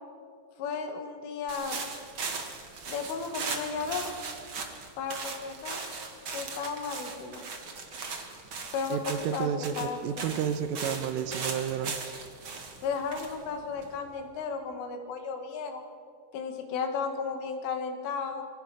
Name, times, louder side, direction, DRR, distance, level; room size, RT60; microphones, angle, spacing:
voice 1, 0.6-1.8 2.9-4.1 5.0-5.8 6.3-7.4 8.7-9.5 9.8-10.4 12.8-15.8 16.3-18.4, left 5 dB, 70° left, 5 dB, 4.4 m, -34 dB
sound 1, 1.5-14.3, right 4 dB, 65° right, 1.2 m, -39 dB
voice 2, 8.9-11.9, right 8 dB, 80° right, 10 dB, 3.5 m, -31 dB
27.5 x 23.0 x 6.1 m, 2.3 s
omnidirectional pair, 6.0 m